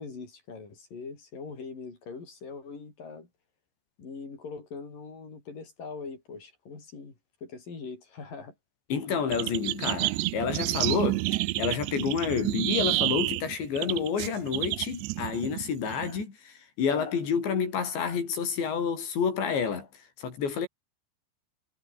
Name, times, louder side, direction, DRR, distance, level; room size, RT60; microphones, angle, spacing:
voice 1, 0.0-3.3 4.0-7.1 7.4-8.5, left 4 dB, 50° left, 7.9 m, -42 dB
voice 2, 8.9-11.2 11.6-19.9 20.2-20.7, left 6 dB, 85° left, 7.2 m, -29 dB
sound 1, 9.3-16.2, right 20 dB, 80° right, 2.9 m, -30 dB
omnidirectional pair, 5.0 m